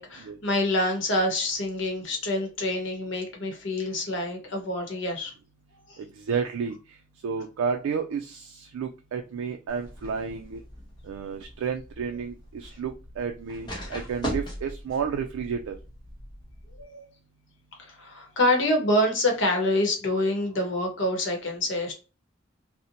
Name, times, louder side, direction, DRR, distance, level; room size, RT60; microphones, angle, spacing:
voice 1, 0.0-5.3 5.9-6.0 16.8-17.0 17.8-21.9, left 1 dB, 60° left, 3 dB, 0.8 m, -26 dB
voice 2, 6.0-6.7 7.2-10.6 11.0-15.8, right 6 dB, 85° right, 4 dB, 0.3 m, -31 dB
sound 1, 9.7-16.8, equal, 20° left, 0.7 m, -40 dB
2.5 x 2.1 x 2.7 m, 0.33 s
head